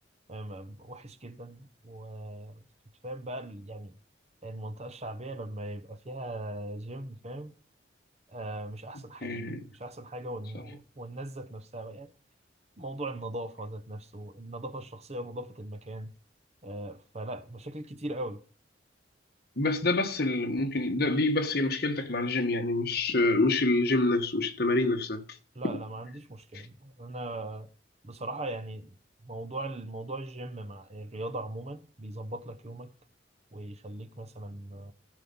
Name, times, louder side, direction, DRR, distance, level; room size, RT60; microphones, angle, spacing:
voice 1, 0.3-2.7 3.0-4.0 4.4-7.5 8.3-9.4 9.7-12.1 12.8-16.1 16.6-18.4 25.5-27.7 28.0-28.9 29.2-32.9 33.5-34.9, right 1 dB, 35° right, 1.1 m, -39 dB
voice 2, 9.2-9.7 19.6-25.2 26.5-26.6, left 2 dB, 55° left, 1.5 m, -27 dB
15.5 x 5.3 x 5.5 m
head